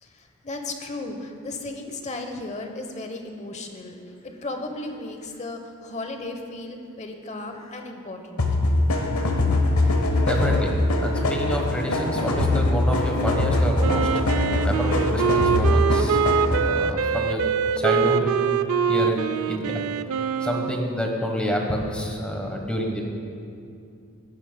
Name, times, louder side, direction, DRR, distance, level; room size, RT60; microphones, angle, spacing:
voice 1, 0.0-8.4, left 2 dB, 30° left, 5 dB, 0.9 m, -35 dB
sound 1, 8.4-16.8, left 2 dB, 80° left, 1.0 m, -22 dB
voice 2, 10.2-14.1 14.6-16.2 16.6-17.4 17.8-18.3 18.9-19.8 20.4-23.0, equal, 5° left, 1 dB, 1.1 m, -28 dB
Wind instrument woodwind instrument, 13.8-20.9, right 7 dB, 70° right, 0.3 m, -24 dB
16.5 x 9.8 x 2.2 m, 2.4 s
head